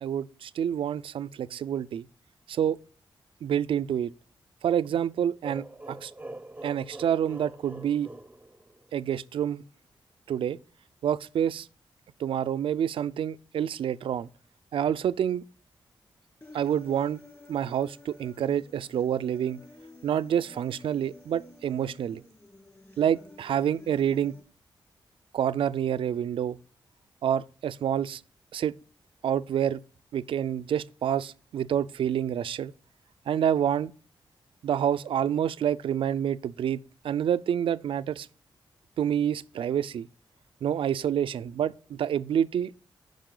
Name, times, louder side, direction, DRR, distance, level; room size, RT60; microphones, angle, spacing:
voice 1, 0.0-2.1 2.5-2.8 3.4-4.1 4.6-6.1 6.6-8.1 8.9-9.6 10.3-10.6 11.0-11.7 12.2-14.3 14.7-15.4 16.5-17.2 17.5-19.6 20.0-22.2 23.0-24.3 25.3-26.6 27.2-28.2 28.5-28.7 29.2-29.8 30.1-32.7 33.3-33.9 34.6-36.8 37.0-38.3 39.0-40.1 40.6-42.7, right 9 dB, 85° right, 0.4 m, -27 dB
sound 1, 5.4-9.1, right 1 dB, 15° right, 0.6 m, -43 dB
Human voice, 16.4-24.4, left 2 dB, 25° left, 2.5 m, -51 dB
10.0 x 5.3 x 3.8 m
cardioid pair, 80°, 9 cm